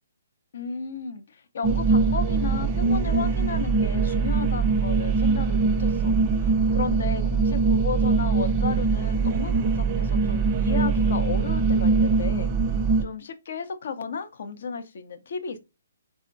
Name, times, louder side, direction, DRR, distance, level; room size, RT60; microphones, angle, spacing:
voice 1, 0.5-12.5 13.0-15.6, left 5 dB, 60° left, 0.6 m, -34 dB
sound 1, 1.6-13.0, right 4 dB, 25° right, 0.5 m, -22 dB
4.6 x 2.1 x 2.5 m
hypercardioid pair, 150°, 0 cm